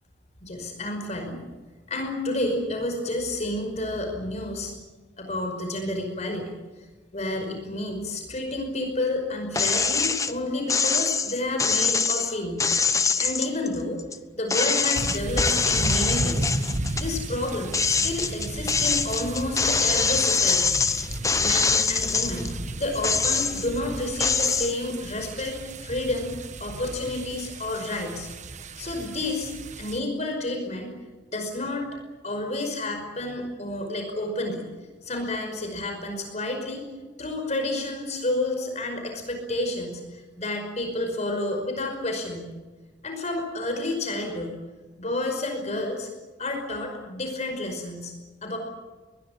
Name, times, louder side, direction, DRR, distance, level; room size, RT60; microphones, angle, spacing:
voice 1, 0.4-1.4 1.9-4.7 5.2-6.5 7.1-12.6 13.2-14.0 14.4-16.5 16.9-20.8 21.4-22.5 22.8-26.3 26.6-28.3 28.8-29.5 29.8-30.9 31.3-31.9 32.2-34.6 35.0-36.9 37.2-42.5 43.0-44.6 45.0-46.1 46.4-48.1 48.4-48.6, left 2 dB, 40° left, 4 dB, 5.3 m, -30 dB
sound 1, 9.5-10.3 10.7-14.2 14.5-17.1 17.5-22.5 22.9-23.8 24.2-24.7, left 5 dB, 15° left, 1.1 m, -24 dB
sound 2, 15.0-30.0, right 1 dB, 40° right, 1.3 m, -34 dB
24.0 x 21.0 x 8.6 m, 1.3 s
head